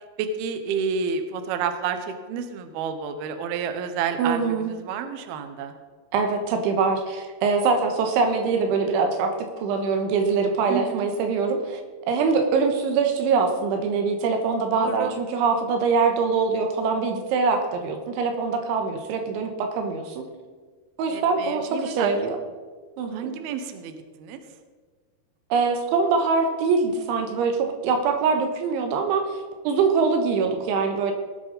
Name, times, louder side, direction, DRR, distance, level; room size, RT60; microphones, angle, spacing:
voice 1, 0.2-5.7 10.7-11.1 14.7-15.1 21.1-22.1 23.1-24.4, right 6 dB, 70° right, 8 dB, 2.6 m, -30 dB
voice 2, 4.2-4.7 6.1-9.3 9.6-11.8 12.1-20.3 21.0-22.4 23.0-23.3 25.5-29.4 29.7-31.1, right 4 dB, 90° right, 4 dB, 3.7 m, -23 dB
19.0 x 8.3 x 4.1 m, 1.5 s
omnidirectional pair, 5.3 m